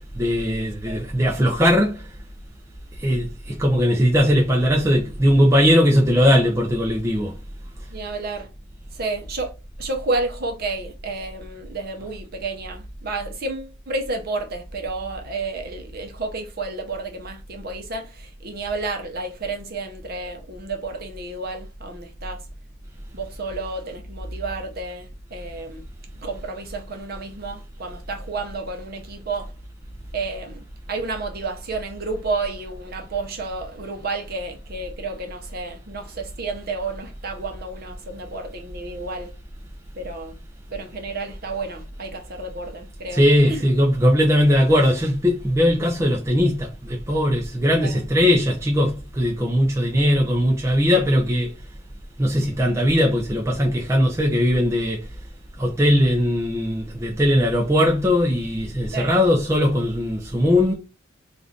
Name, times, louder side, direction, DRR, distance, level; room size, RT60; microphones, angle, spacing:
voice 1, 0.1-2.1 2.9-7.4 43.1-51.5 52.2-55.1 55.6-60.7, equal, 15° right, 0.4 m, -19 dB
voice 2, 7.9-8.5 8.9-9.5 9.8-22.4 23.1-25.8 26.2-29.5 30.1-39.3 40.0-40.4 40.7-43.7 47.8-48.1 58.9-59.2, right 3 dB, 45° right, 0.7 m, -31 dB
2.6 x 2.4 x 3.4 m
head